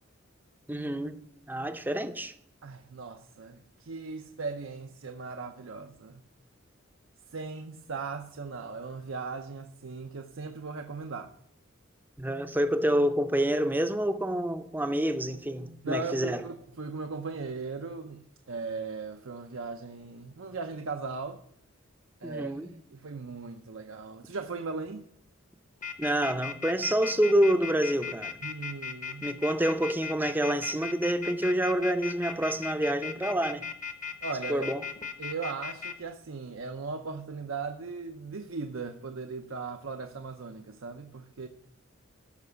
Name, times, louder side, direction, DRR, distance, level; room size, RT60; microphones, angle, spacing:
voice 1, 0.7-1.2 1.5-2.3 12.2-16.4 22.2-22.7 26.0-28.4 29.2-33.7 34.5-34.8, right 1 dB, 10° right, 0.6 m, -27 dB
voice 2, 2.6-6.2 7.3-11.3 15.8-21.4 22.2-22.6 22.9-25.1 28.4-29.3 34.2-34.7 35.2-41.5, right 4 dB, 70° right, 0.7 m, -38 dB
sound 1, 25.8-35.9, left 6 dB, 40° left, 1.0 m, -37 dB
13.0 x 5.9 x 7.0 m
head